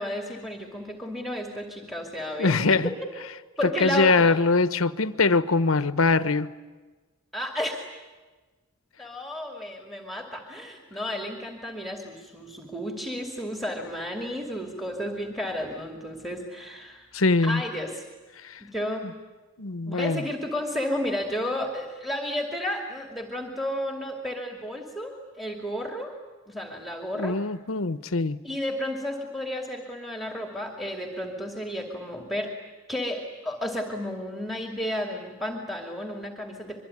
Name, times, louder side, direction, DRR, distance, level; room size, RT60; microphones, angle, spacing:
voice 1, 0.0-2.9 3.6-4.4 7.3-7.9 9.0-17.1 17.4-18.0 18.6-19.1 19.9-26.1 26.5-27.4 28.4-32.6 32.9-36.8, left 1 dB, ahead, 3 dB, 2.6 m, -32 dB
voice 2, 2.4-2.9 3.8-6.5 17.1-17.6 18.4-18.6 19.6-20.2 27.2-28.4, left 3 dB, 85° left, 13 dB, 1.1 m, -22 dB
25.5 x 23.0 x 9.9 m, 1.3 s
head